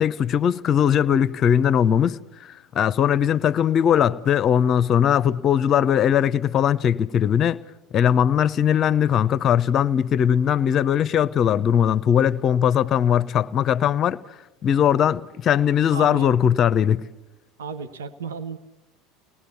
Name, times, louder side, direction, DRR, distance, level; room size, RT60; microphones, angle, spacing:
voice 1, 0.0-7.6 7.9-14.2 14.6-17.0, left 9 dB, 45° left, 0.7 m, -20 dB
voice 2, 15.9-16.3 17.6-18.6, right 5 dB, 80° right, 1.0 m, -33 dB
29.5 x 19.5 x 7.0 m
hypercardioid pair, 75°, 0 cm